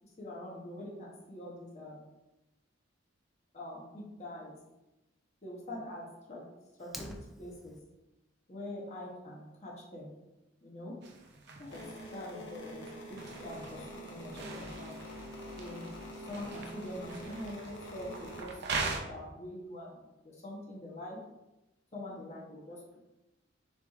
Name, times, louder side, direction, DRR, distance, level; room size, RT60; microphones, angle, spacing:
voice 1, 0.0-2.0 3.5-4.6 5.4-6.4 6.8-7.8 8.5-10.1 10.6-10.9 11.6-11.8 12.1-15.0 15.6-15.9 16.3-18.6 18.9-21.2 21.9-22.8, left 1 dB, 35° left, -5 dB, 0.9 m, -44 dB
Fire, 6.8-7.8, equal, ahead, 0.3 m, -45 dB
sound 1, 11.0-19.0, right 4 dB, 60° right, 0.5 m, -42 dB
sound 2, 11.7-18.4, equal, 65° left, 0.9 m, -46 dB
6.7 x 3.1 x 2.4 m, 0.99 s
head